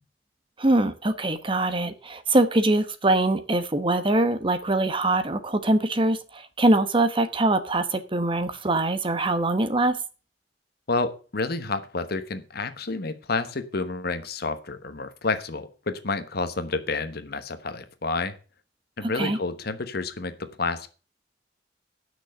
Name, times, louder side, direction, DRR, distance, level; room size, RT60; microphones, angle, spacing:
voice 1, 0.6-10.0 19.0-19.4, right 2 dB, 30° right, 10 dB, 1.0 m, -23 dB
voice 2, 10.9-18.3 19.0-20.9, left 3 dB, 60° left, 10 dB, 1.2 m, -29 dB
9.1 x 6.3 x 7.8 m, 0.36 s
head